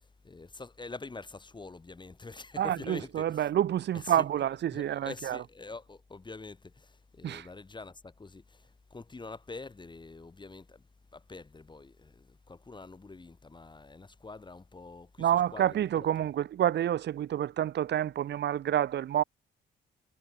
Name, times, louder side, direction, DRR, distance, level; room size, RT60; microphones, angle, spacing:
voice 1, 0.2-3.5 4.1-4.3 4.7-10.8 11.1-16.3, left 3 dB, 25° left, 3.0 m, -46 dB
voice 2, 2.6-5.4 7.2-7.5 15.2-19.2, right 11 dB, 60° right, 0.9 m, -28 dB
cardioid pair, 90°, 20 cm